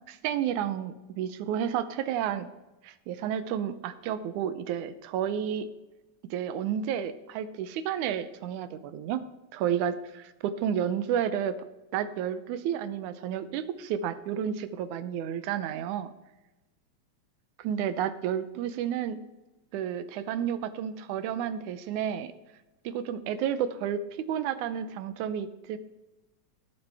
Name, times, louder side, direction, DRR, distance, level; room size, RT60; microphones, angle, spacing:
voice 1, 0.1-2.5 2.8-5.7 6.3-9.2 9.5-11.6 11.9-16.1 17.6-19.2 19.7-22.3 22.8-24.0 24.3-25.8, right 9 dB, 90° right, 12 dB, 2.2 m, -31 dB
18.5 x 8.1 x 3.4 m, 1.1 s
omnidirectional pair, 3.4 m